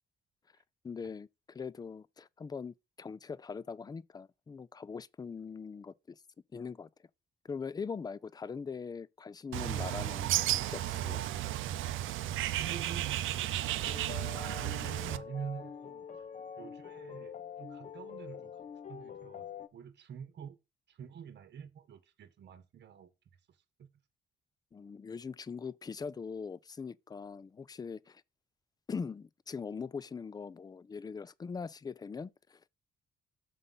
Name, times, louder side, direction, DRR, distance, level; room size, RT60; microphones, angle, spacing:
voice 1, 0.8-6.2 6.5-6.9 7.4-10.3 10.6-11.2 14.6-14.7 24.7-28.2 28.9-32.7, left 5 dB, 20° left, 0.3 m, -42 dB
Bird, 9.5-15.2, right 13 dB, 80° right, 0.5 m, -33 dB
voice 2, 12.6-14.1 14.8-16.1 16.6-19.5 19.7-20.6 20.9-23.1 23.8-23.9, right 7 dB, 60° right, 1.0 m, -46 dB
sound 1, 13.8-19.7, left 7 dB, 40° left, 0.8 m, -45 dB
6.8 x 3.8 x 5.5 m
cardioid pair, 90°, 20 cm